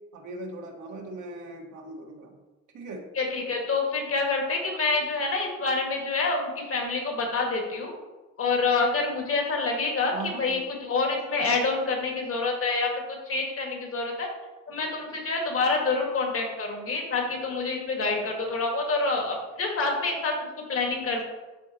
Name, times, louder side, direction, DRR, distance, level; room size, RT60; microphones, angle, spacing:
voice 1, 0.1-2.4 2.7-3.1 10.1-10.6, right 2 dB, 75° right, 1 dB, 1.5 m, -39 dB
voice 2, 3.2-7.9 8.4-12.9 13.3-14.3 14.7-21.2, left 3 dB, 50° left, 1 dB, 1.8 m, -27 dB
12.0 x 4.0 x 2.9 m, 1.1 s
cardioid pair, 90°, 30 cm